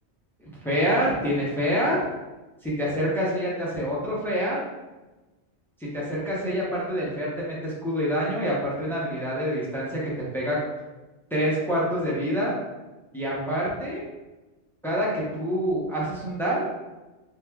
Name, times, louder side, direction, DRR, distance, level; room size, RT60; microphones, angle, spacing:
voice 1, 0.4-2.0 2.6-4.6 5.8-10.6 11.3-12.5 13.1-14.0 14.8-16.6, equal, 5° left, -5 dB, 0.4 m, -26 dB
2.9 x 2.2 x 3.4 m, 1.1 s
omnidirectional pair, 1.2 m